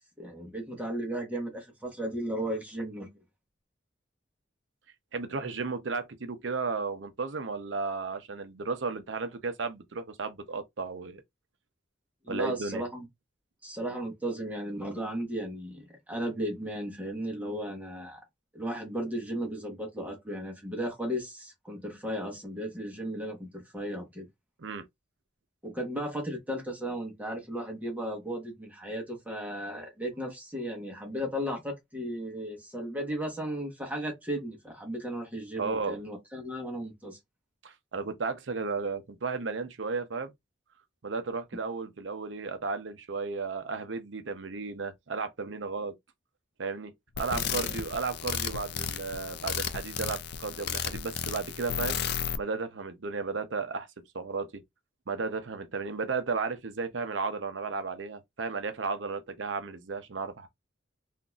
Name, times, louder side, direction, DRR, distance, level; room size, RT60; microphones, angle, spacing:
voice 1, 0.2-3.1 12.2-13.1 13.6-18.2 18.5-24.3 25.6-37.2 47.3-47.8, equal, 10° right, 1.1 m, -35 dB
voice 2, 5.1-11.2 12.3-12.8 24.6-24.8 35.6-36.0 37.6-40.3 41.0-46.0 46.6-52.0 52.4-53.9 54.1-54.6 55.1-60.5, right 4 dB, 85° right, 0.7 m, -34 dB
sound 1, 47.1-52.4, left 7 dB, 60° left, 0.4 m, -33 dB
3.9 x 2.6 x 2.4 m
head